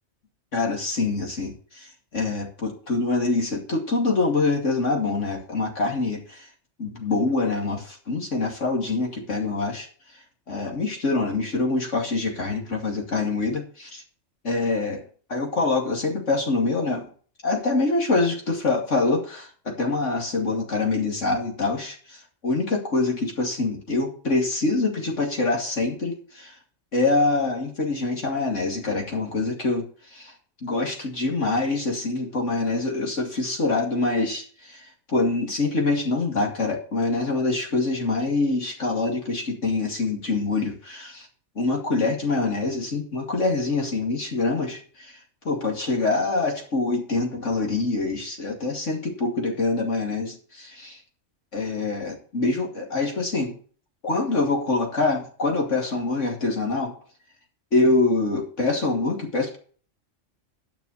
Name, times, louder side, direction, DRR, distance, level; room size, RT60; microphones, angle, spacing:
voice 1, 0.5-6.5 6.8-9.9 10.5-14.0 14.4-15.0 15.3-17.1 17.4-26.5 26.9-29.9 30.1-30.3 30.6-34.8 35.1-41.3 41.6-45.2 45.4-51.0 51.5-53.5 54.0-56.9 57.7-59.6, left 3 dB, 75° left, 0 dB, 2.8 m, -25 dB
9.9 x 6.0 x 6.6 m, 0.43 s
omnidirectional pair, 1.3 m